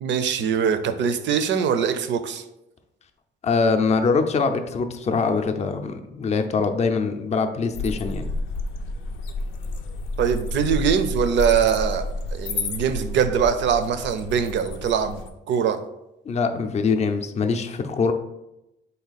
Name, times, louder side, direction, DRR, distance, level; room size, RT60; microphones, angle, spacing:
voice 1, 0.0-2.4 10.2-12.1 12.3-15.8, right 7 dB, 65° right, 10 dB, 0.5 m, -22 dB
voice 2, 3.4-8.3 16.3-18.1, left 4 dB, 35° left, 7 dB, 0.5 m, -23 dB
sound 1, 7.7-15.3, left 2 dB, 90° left, 0.5 m, -30 dB
4.0 x 2.8 x 4.0 m, 0.90 s
cardioid pair, 90°, 20 cm